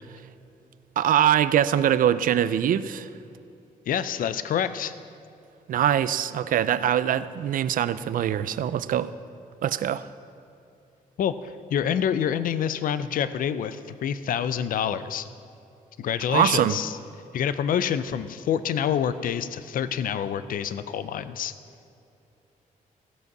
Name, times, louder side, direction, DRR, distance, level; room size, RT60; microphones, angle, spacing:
voice 1, 1.0-3.1 5.7-9.1 9.6-10.1 16.3-16.8, right 10 dB, 65° right, 15 dB, 0.5 m, -23 dB
voice 2, 3.9-4.9 11.2-15.3 16.0-17.0 17.3-21.5, left 8 dB, 70° left, 13 dB, 0.5 m, -27 dB
15.5 x 8.1 x 6.0 m, 2.7 s
wide cardioid pair, 145°, 15 cm